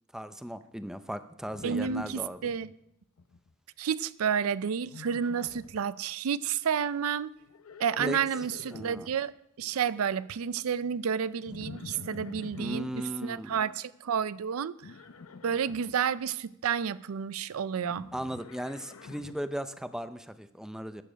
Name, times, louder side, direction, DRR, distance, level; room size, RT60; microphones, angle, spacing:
voice 1, 0.1-2.5 8.0-8.2 8.7-9.1 12.6-13.6 18.1-21.0, equal, 5° right, 0.5 m, -37 dB
Livestock farm animals working animals, 1.5-2.7 3.0-3.5 4.8-5.8 7.4-9.2 11.5-12.8 14.8-15.9 17.7-19.5, left 4 dB, 80° left, 0.7 m, -47 dB
voice 2, 1.6-2.7 3.8-7.3 7.8-9.3 9.6-14.9 15.4-18.1, right 7 dB, 85° right, 0.4 m, -30 dB
13.0 x 9.0 x 5.0 m
head